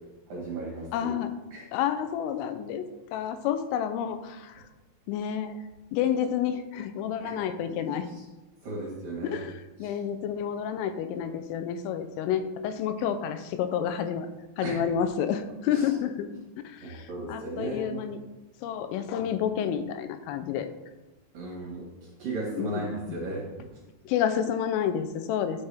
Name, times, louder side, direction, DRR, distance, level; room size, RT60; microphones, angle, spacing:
voice 1, 0.3-1.2 1.5-1.6 7.2-7.3 8.6-9.4 9.8-10.0 14.6-14.8 15.7-15.9 16.8-18.0 21.3-23.4, right 3 dB, 65° right, -3 dB, 2.3 m, -35 dB
voice 2, 0.9-1.3 1.7-2.9 3.1-4.6 5.1-5.6 5.9-8.1 9.2-14.3 14.6-16.3 16.6-18.2 18.6-20.7 22.5-22.9 24.1-25.7, left 9 dB, 85° left, 10 dB, 3.1 m, -29 dB
11.0 x 5.9 x 3.4 m, 1.1 s
omnidirectional pair, 5.8 m